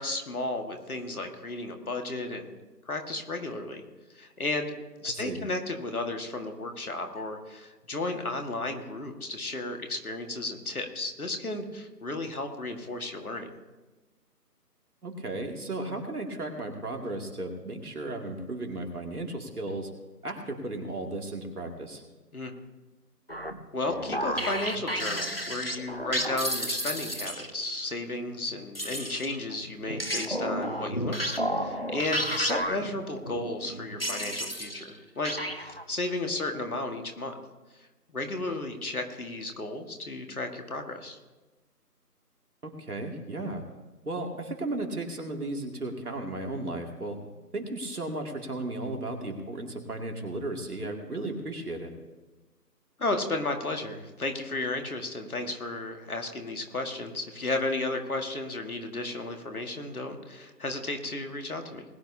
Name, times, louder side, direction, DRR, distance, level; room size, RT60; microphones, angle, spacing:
voice 1, 0.0-2.5 2.9-3.8 4.1-4.7 5.0-13.5 22.3-22.5 23.7-37.3 37.8-37.9 38.1-41.2 53.0-61.8, left 2 dB, 60° left, 4 dB, 1.8 m, -33 dB
voice 2, 5.0-5.4 15.0-19.9 20.2-22.0 42.6-43.6 44.1-47.2 47.5-51.9, right 2 dB, 65° right, 2 dB, 2.5 m, -35 dB
sound 1, 23.3-27.7 28.7-35.0 35.2-35.8, equal, 40° left, 0.5 m, -32 dB
20.5 x 10.5 x 2.8 m, 1.2 s
figure-of-eight pair, 165°, 48 cm